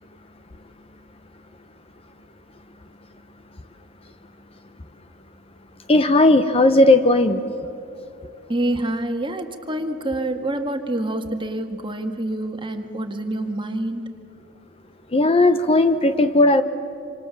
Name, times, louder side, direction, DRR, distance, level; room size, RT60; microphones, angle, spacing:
voice 1, 5.9-7.4 15.1-16.6, left 2 dB, 30° left, 10 dB, 0.8 m, -16 dB
voice 2, 8.5-14.1, right 1 dB, 25° right, 5 dB, 1.8 m, -27 dB
27.0 x 26.5 x 7.2 m, 2.9 s
head